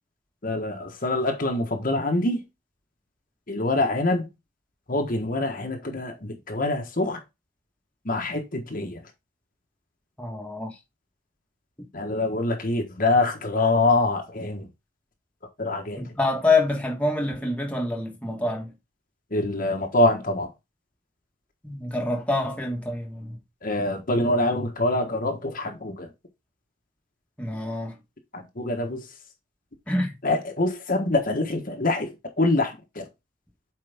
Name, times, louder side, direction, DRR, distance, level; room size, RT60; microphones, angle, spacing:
voice 1, 0.4-2.4 3.5-4.3 4.9-7.2 8.0-9.0 11.9-14.7 15.6-16.0 19.3-20.5 23.6-26.1 28.3-29.0 30.2-32.1 32.4-33.1, left 2 dB, 40° left, 1.3 m, -25 dB
voice 2, 10.2-10.7 16.0-18.7 21.6-23.4 27.4-27.9 29.9-30.1, left 2 dB, 5° left, 1.4 m, -26 dB
8.0 x 4.8 x 3.5 m
head